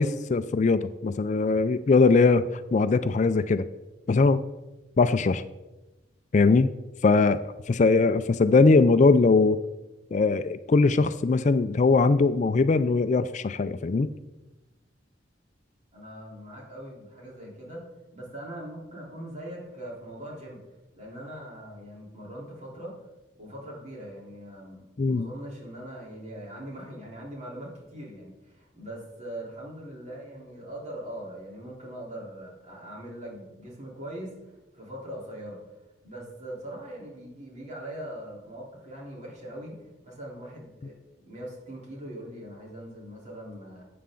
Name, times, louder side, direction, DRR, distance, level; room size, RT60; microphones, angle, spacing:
voice 1, 0.0-3.7 4.1-4.4 5.0-5.4 6.3-6.7 7.0-7.4 7.7-9.6 10.1-14.1 25.0-25.3, left 3 dB, 40° left, 12 dB, 0.4 m, -21 dB
voice 2, 15.9-17.8 18.1-20.6 21.0-22.9 23.3-34.3 34.7-35.6 36.0-39.8 40.0-43.8, right 1 dB, 40° right, -3 dB, 3.7 m, -41 dB
13.0 x 8.5 x 3.8 m, 1.0 s
head